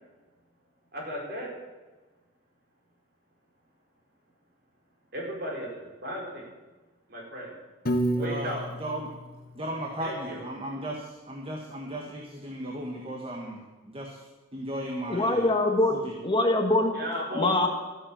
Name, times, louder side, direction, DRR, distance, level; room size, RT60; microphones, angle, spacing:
voice 1, 0.9-1.5 5.1-6.5 7.1-7.5 8.1-8.6 10.0-10.4 16.9-17.7, equal, 55° right, -2 dB, 4.7 m, -35 dB
Piano, 7.9-10.1, right 1 dB, 50° left, 1.2 m, -31 dB
voice 2, 8.2-9.1 9.5-14.2 14.5-15.5 15.9-16.1, right 1 dB, 30° right, 0 dB, 1.6 m, -36 dB
voice 3, 15.1-16.0 16.2-16.9 17.3-17.7, left 2 dB, 25° left, 4 dB, 1.4 m, -23 dB
13.5 x 9.0 x 7.5 m, 1.2 s
head